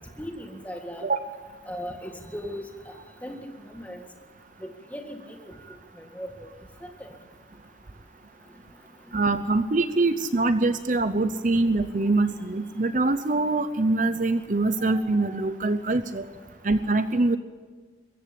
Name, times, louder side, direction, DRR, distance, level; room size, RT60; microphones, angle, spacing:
voice 1, 0.2-1.1 1.7-2.9 3.2-3.4 3.7-4.0 4.6-5.5 6.0-6.5 6.8-7.1, equal, 10° left, 3 dB, 1.9 m, -38 dB
voice 2, 9.1-16.2 16.6-17.4, right 2 dB, 45° right, 11 dB, 0.7 m, -24 dB
23.0 x 14.5 x 8.4 m, 1.5 s
head